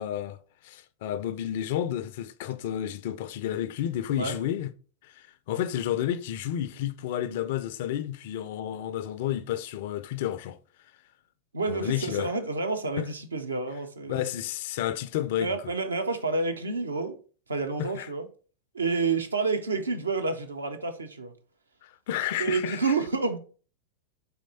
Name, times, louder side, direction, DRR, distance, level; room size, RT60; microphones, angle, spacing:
voice 1, 0.0-4.7 5.0-10.6 11.7-12.3 13.0-13.1 14.1-15.7 17.8-18.1 21.8-22.9, left 11 dB, 50° left, 0.3 m, -31 dB
voice 2, 11.5-14.3 15.4-17.2 17.5-18.3 18.7-21.3 22.4-23.4, right 4 dB, 75° right, 0.6 m, -29 dB
4.2 x 3.1 x 4.0 m
figure-of-eight pair, 90°, 0 cm